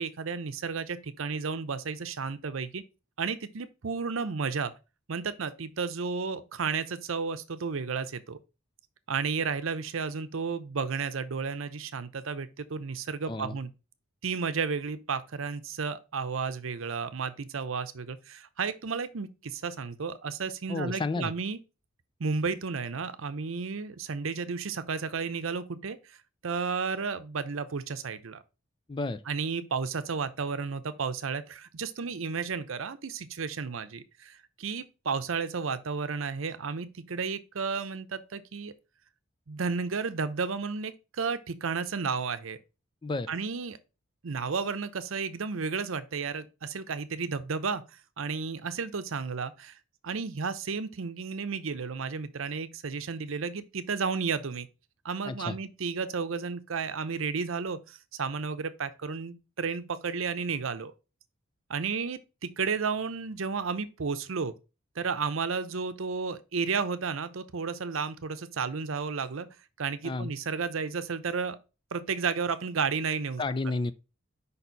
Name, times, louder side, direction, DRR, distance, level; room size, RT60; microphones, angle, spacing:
voice 1, 0.0-2.8 3.2-4.7 5.1-8.4 9.1-13.7 14.2-21.6 22.2-26.2 26.4-28.4 29.3-38.7 39.5-42.6 43.3-43.8 44.2-47.8 48.2-49.7 50.0-54.7 55.0-60.9 61.7-64.5 65.0-69.5 69.8-71.6 71.9-73.4, right 5 dB, 75° right, 0.7 m, -32 dB
voice 2, 20.7-21.3 28.9-29.2 43.0-43.3 55.2-55.6 70.0-70.3 73.4-73.9, left 3 dB, 25° left, 0.3 m, -31 dB
5.4 x 4.4 x 3.9 m
head